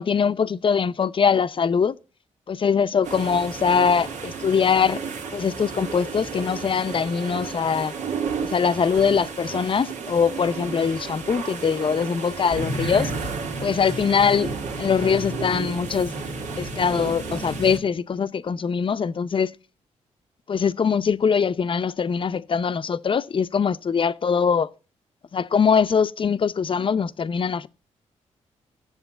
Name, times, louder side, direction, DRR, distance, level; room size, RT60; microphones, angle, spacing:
voice 1, 0.0-2.0 2.5-5.0 5.3-7.9 8.4-13.1 13.6-14.5 14.8-16.1 16.6-19.5 20.5-24.7 25.3-27.7, left 6 dB, 45° left, 0.7 m, -22 dB
sound 1, 3.0-17.8, right 4 dB, 80° right, 2.1 m, -32 dB
8.1 x 7.1 x 7.1 m
cardioid pair, 65°, 13 cm